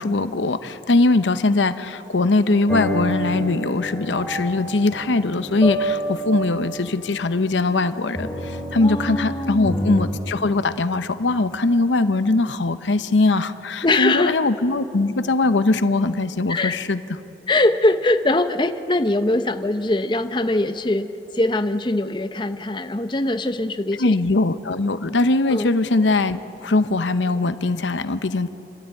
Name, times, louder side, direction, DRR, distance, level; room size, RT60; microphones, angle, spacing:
voice 1, 0.0-17.0 24.0-28.5, left 2 dB, 90° left, 12 dB, 0.8 m, -21 dB
sound 1, 2.7-10.0, equal, 5° left, 3.6 m, -29 dB
voice 2, 8.8-9.8 13.8-14.3 16.5-16.8 17.5-21.1 21.3-24.1 25.5-25.7, left 2 dB, 25° left, 8 dB, 0.7 m, -22 dB
29.5 x 12.0 x 9.1 m, 3.0 s
head